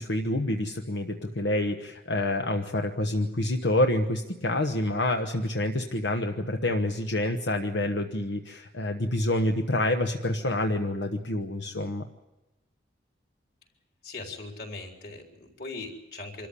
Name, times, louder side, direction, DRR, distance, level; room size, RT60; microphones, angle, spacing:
voice 1, 0.0-12.0, left 1 dB, 80° left, 4 dB, 1.2 m, -27 dB
voice 2, 14.0-16.5, left 3 dB, 55° left, 2 dB, 3.9 m, -40 dB
26.0 x 14.0 x 9.9 m, 1.0 s
head